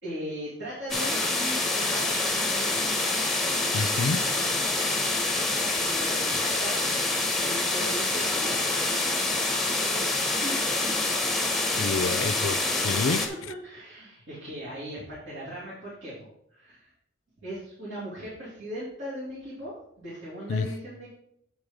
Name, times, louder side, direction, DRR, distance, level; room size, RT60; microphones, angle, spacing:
voice 1, 0.0-2.9 5.8-8.6 10.3-10.5 10.9-11.0 13.3-16.9 17.4-21.1, equal, 65° right, 2.7 m, -38 dB
sound 1, 0.9-13.3, left 2 dB, ahead, 0.9 m, -26 dB
voice 2, 3.7-4.2 11.8-13.3 20.5-20.7, left 4 dB, 80° left, 0.4 m, -28 dB
7.9 x 4.8 x 5.2 m
head